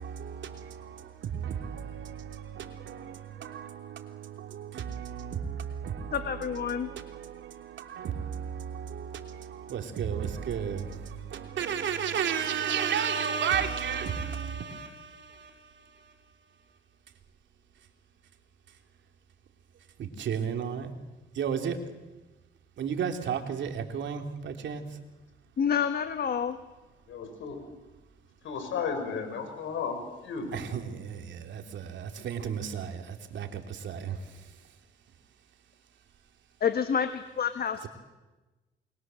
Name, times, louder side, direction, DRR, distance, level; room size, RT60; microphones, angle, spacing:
voice 1, 0.0-16.1 20.0-20.9 21.3-21.8 22.8-24.8 30.5-34.2 37.8-37.9, right 7 dB, 70° right, 3.2 m, -34 dB
voice 2, 6.1-6.9 25.6-26.6 36.6-37.9, left 7 dB, 50° left, 1.5 m, -28 dB
voice 3, 27.1-27.6 28.4-30.5, left 5 dB, 75° left, 6.4 m, -34 dB
29.0 x 22.5 x 7.8 m
cardioid pair, 90°, 20 cm